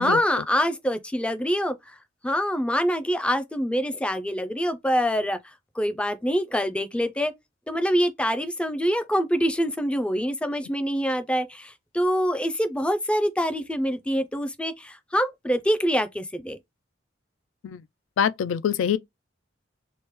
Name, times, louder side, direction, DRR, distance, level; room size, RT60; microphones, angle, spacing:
voice 1, 0.0-1.8 2.2-5.4 5.8-7.3 7.7-16.6, equal, 5° left, 0.3 m, -25 dB
voice 2, 18.2-19.0, left 8 dB, 85° left, 0.3 m, -24 dB
2.9 x 2.1 x 3.0 m
head